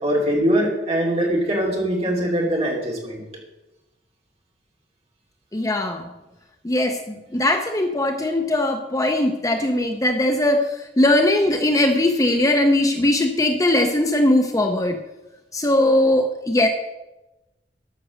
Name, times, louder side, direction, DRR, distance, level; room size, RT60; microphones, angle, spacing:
voice 1, 0.0-3.2, equal, 35° right, -2 dB, 2.8 m, -22 dB
voice 2, 5.5-6.1 6.6-15.0 15.5-16.7, left 1 dB, 20° left, 5 dB, 0.7 m, -20 dB
13.0 x 6.2 x 6.3 m, 1.0 s
head